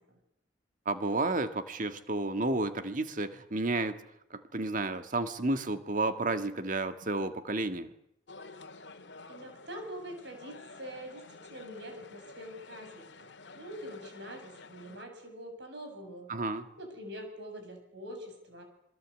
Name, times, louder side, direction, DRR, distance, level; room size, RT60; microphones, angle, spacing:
voice 1, 0.8-4.0 4.3-7.9 16.3-16.7, right 2 dB, 45° right, 9 dB, 1.7 m, -31 dB
sound 1, 8.3-15.0, left 3 dB, 70° left, 2.0 m, -50 dB
voice 2, 9.3-16.3 16.8-18.6, equal, 65° right, 5 dB, 7.6 m, -45 dB
27.5 x 22.5 x 8.4 m, 0.76 s
head